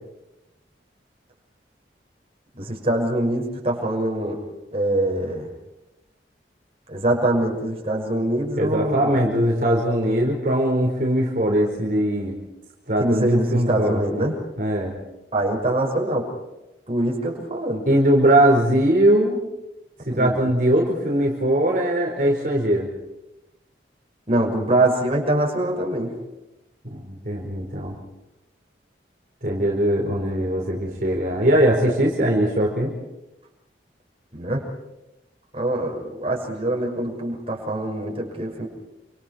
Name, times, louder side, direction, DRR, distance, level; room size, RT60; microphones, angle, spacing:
voice 1, 2.5-4.4 4.7-5.5 6.9-9.2 13.0-14.3 15.3-16.3 16.9-17.9 20.1-20.4 24.3-26.1 34.3-34.6 35.5-38.7, right 1 dB, 35° right, 0 dB, 6.0 m, -24 dB
voice 2, 8.6-12.3 12.9-14.0 14.6-14.9 17.9-19.4 20.1-22.9 26.9-27.9 29.4-32.9, right 1 dB, 50° right, -2 dB, 4.8 m, -20 dB
28.5 x 27.5 x 4.6 m, 0.96 s
head